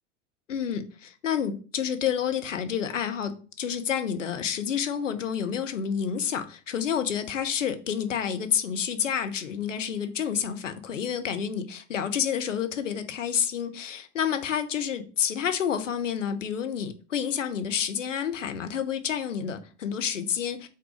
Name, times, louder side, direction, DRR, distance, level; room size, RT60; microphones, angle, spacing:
voice 1, 0.5-20.7, left 8 dB, 80° left, 0.9 m, -29 dB
5.6 x 3.7 x 5.0 m
figure-of-eight pair, 80°, 37 cm